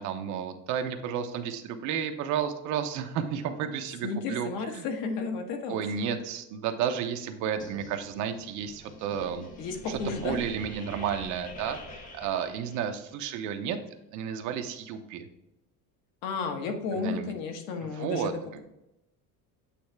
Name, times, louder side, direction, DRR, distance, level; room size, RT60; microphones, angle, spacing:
voice 1, 0.0-4.5 4.7-4.8 5.7-9.5 10.1-13.8 14.1-15.2 17.0-17.3 17.8-18.6, right 8 dB, 55° right, 6 dB, 0.8 m, -32 dB
voice 2, 4.0-5.8 6.1-6.2 9.6-10.4 16.2-18.3, left 4 dB, 70° left, 4 dB, 1.3 m, -33 dB
sound 1, 7.6-13.2, left 2 dB, 20° left, 0.7 m, -46 dB
8.5 x 3.2 x 4.5 m, 0.91 s
cardioid pair, 180°, 36 cm